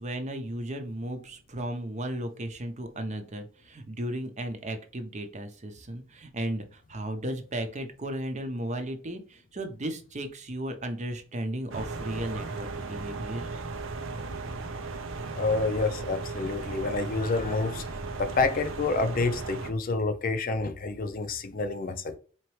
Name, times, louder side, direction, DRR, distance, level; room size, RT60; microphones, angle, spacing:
voice 1, 0.0-13.5, right 1 dB, 35° right, 0.8 m, -35 dB
sound 1, 11.7-19.7, right 3 dB, 90° right, 0.7 m, -36 dB
voice 2, 15.4-17.8 18.2-22.2, left 3 dB, 45° left, 0.5 m, -28 dB
4.4 x 3.0 x 3.1 m
head